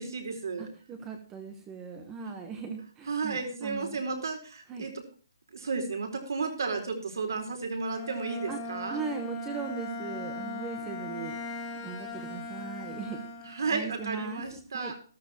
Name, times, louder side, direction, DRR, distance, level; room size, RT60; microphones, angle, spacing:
voice 1, 0.0-0.7 3.1-4.9 5.5-9.0 13.5-15.0, right 4 dB, 60° right, 4 dB, 4.2 m, -33 dB
voice 2, 0.6-4.0 4.7-4.9 8.5-8.6 8.9-13.2 13.7-14.9, right 5 dB, 10° right, 5 dB, 1.1 m, -39 dB
Bowed string instrument, 7.8-13.9, left 2 dB, 15° left, 1.6 m, -39 dB
13.5 x 13.5 x 3.0 m, 0.40 s
hypercardioid pair, 170°, 2 cm